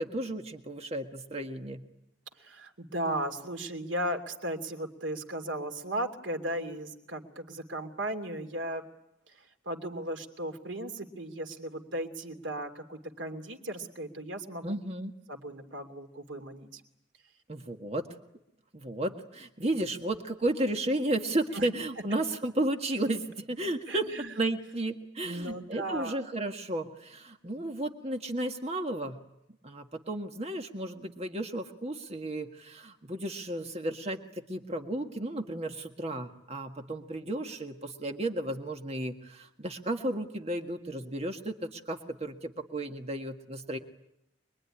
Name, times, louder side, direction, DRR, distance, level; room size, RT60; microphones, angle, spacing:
voice 1, 0.0-1.8 14.6-15.1 17.5-18.1 18.7-29.2 29.6-43.8, right 1 dB, 35° right, 5 dB, 1.7 m, -33 dB
voice 2, 2.4-8.8 9.3-14.8 15.3-16.8 21.5-21.7 23.9-24.3 25.2-26.3, right 1 dB, 80° right, 5 dB, 2.8 m, -36 dB
25.0 x 22.0 x 10.0 m, 0.82 s
head